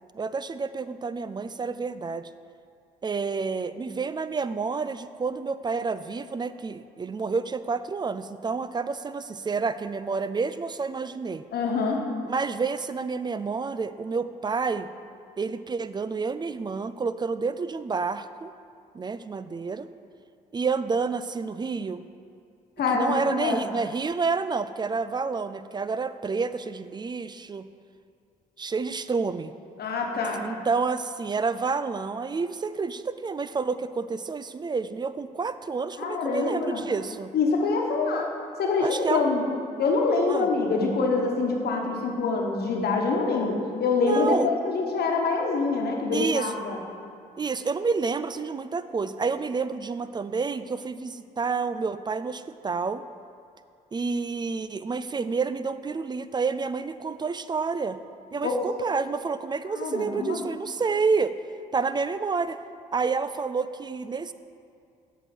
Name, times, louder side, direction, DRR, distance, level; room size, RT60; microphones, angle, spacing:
voice 1, 0.1-2.3 3.0-11.5 12.2-14.9 15.4-18.5 18.9-19.9 20.5-22.0 22.9-27.7 28.6-29.5 30.4-37.3 38.8-39.3 40.3-40.5 44.0-44.5 46.1-46.5 47.4-53.0 53.9-58.0 58.3-61.3 61.7-62.6 62.9-64.3, right 4 dB, 25° right, 13 dB, 0.3 m, -29 dB
voice 2, 11.5-12.0 22.8-23.7 29.8-30.4 36.0-36.8 37.3-38.3 38.6-39.4 39.8-46.8 58.4-58.6 59.7-60.4, left 4 dB, 60° left, 1 dB, 1.2 m, -25 dB
7.9 x 4.8 x 5.9 m, 2.4 s
hypercardioid pair, 50°, 18 cm